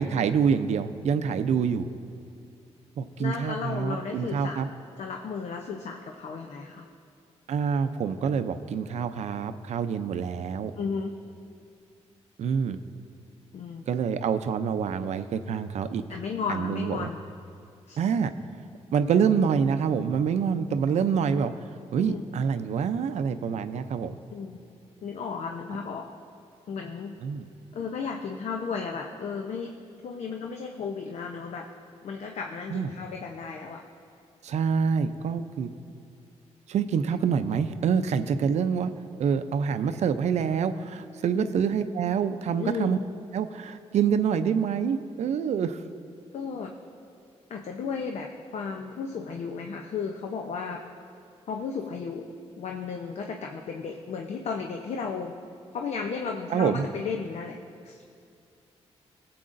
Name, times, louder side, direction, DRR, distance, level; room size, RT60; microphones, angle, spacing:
voice 1, 0.0-1.9 3.0-4.7 7.5-10.7 12.4-12.8 13.9-16.0 16.5-17.1 18.0-18.3 18.9-21.5 21.9-24.2 27.2-27.4 32.7-32.9 34.4-35.7 36.7-38.9 39.2-43.0 43.3-45.8 56.5-56.9, right 7 dB, 75° right, 10 dB, 0.5 m, -26 dB
voice 2, 3.2-4.6 5.0-6.9 10.8-11.2 13.5-13.9 16.1-17.2 17.9-18.0 22.1-22.2 24.3-24.6 25.0-26.1 26.7-27.1 27.7-29.7 30.0-31.7 32.0-33.8 41.3-41.5 42.6-42.9 46.3-46.7 47.5-50.8 51.5-52.3 52.6-55.3 55.7-57.6 57.8-58.0, left 5 dB, 70° left, 2 dB, 0.6 m, -34 dB
21.5 x 7.7 x 2.6 m, 2.5 s
cardioid pair, 95°, 12 cm